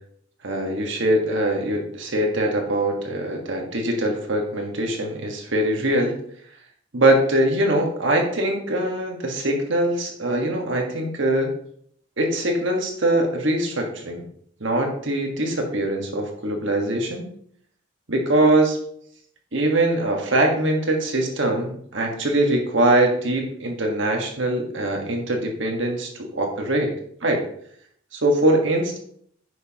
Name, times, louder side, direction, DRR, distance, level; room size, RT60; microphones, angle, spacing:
voice 1, 0.4-6.2 6.9-11.5 12.2-14.2 14.6-17.3 18.1-18.8 19.5-26.9 27.2-27.4 28.1-29.0, right 1 dB, 65° right, 2 dB, 1.6 m, -22 dB
9.6 x 6.4 x 3.0 m, 0.65 s
head